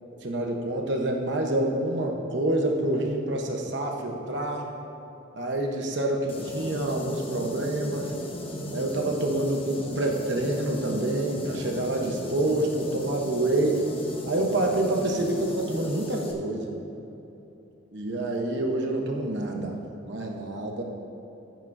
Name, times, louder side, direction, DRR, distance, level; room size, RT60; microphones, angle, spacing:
voice 1, 0.2-4.7 5.3-8.1 8.7-13.8 14.3-16.7 17.9-19.8 20.1-20.8, right 1 dB, 60° right, 1 dB, 1.0 m, -27 dB
sound 1, 6.3-16.3, left 1 dB, 25° left, 1.0 m, -36 dB
15.5 x 9.2 x 2.7 m, 3.0 s
head